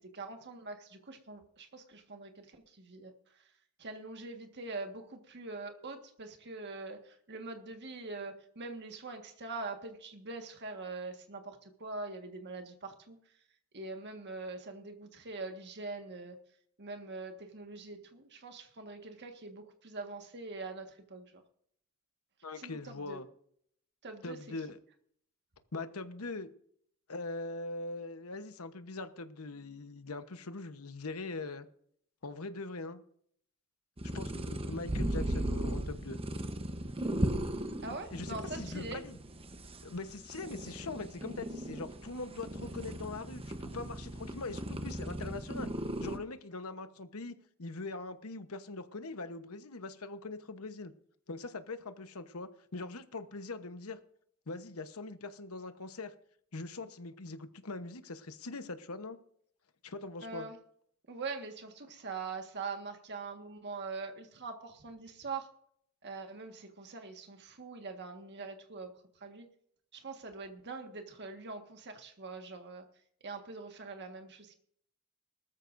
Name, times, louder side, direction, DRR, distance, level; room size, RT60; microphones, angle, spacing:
voice 1, 0.0-3.4 3.8-13.2 13.7-16.4 16.8-21.4 22.6-23.2 24.0-24.4 37.8-39.0 60.2-60.6 61.1-65.5 66.0-69.5 69.9-72.8 73.2-74.5, right 3 dB, 50° right, 4 dB, 1.7 m, -43 dB
voice 2, 22.4-23.3 24.2-24.8 25.7-26.5 27.1-31.7 32.2-33.0 34.1-36.2 37.9-39.2 39.8-45.7 46.0-50.9 51.3-54.0 54.5-56.1 56.5-59.2 59.8-60.5, left 3 dB, 75° left, 10 dB, 1.1 m, -42 dB
sound 1, 34.0-46.2, right 1 dB, 25° right, 1.0 m, -37 dB
19.5 x 13.5 x 2.6 m, 0.66 s
head